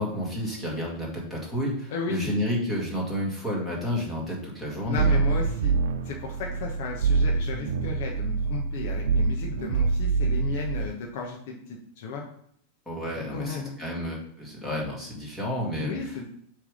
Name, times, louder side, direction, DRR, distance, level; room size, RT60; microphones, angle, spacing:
voice 1, 0.0-5.2 12.9-16.3, equal, 5° left, -4 dB, 2.0 m, -31 dB
voice 2, 1.9-2.4 4.9-5.7 6.0-12.2 13.3-13.8 15.8-16.3, left 4 dB, 55° left, 0 dB, 1.1 m, -34 dB
sound 1, 4.9-10.9, right 4 dB, 85° right, 0.7 m, -25 dB
7.3 x 3.5 x 5.1 m, 0.67 s
supercardioid pair, 165°, 0 cm